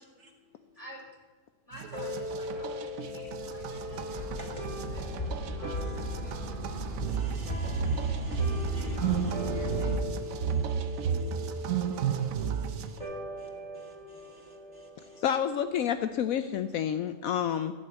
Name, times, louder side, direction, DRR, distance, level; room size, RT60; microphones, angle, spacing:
voice 1, 0.2-0.8 2.6-2.7 4.4-5.0 5.8-5.9 6.7-13.1 13.4-13.5 13.7-15.2, right 1 dB, 50° right, 1 dB, 2.2 m, -55 dB
voice 2, 1.6-4.4 4.9-5.9 8.7-9.9, equal, 20° left, -3 dB, 4.6 m, -51 dB
sound 1, 1.7-13.0, right 7 dB, 70° right, 1.1 m, -33 dB
sound 2, 1.9-16.7, left 1 dB, 20° right, 2.2 m, -41 dB
sound 3, 3.1-10.0, left 1 dB, 40° left, 2.2 m, -36 dB
voice 3, 15.2-17.7, left 9 dB, 70° left, 10 dB, 1.0 m, -29 dB
15.5 x 6.5 x 9.2 m, 1.3 s
omnidirectional pair, 1.6 m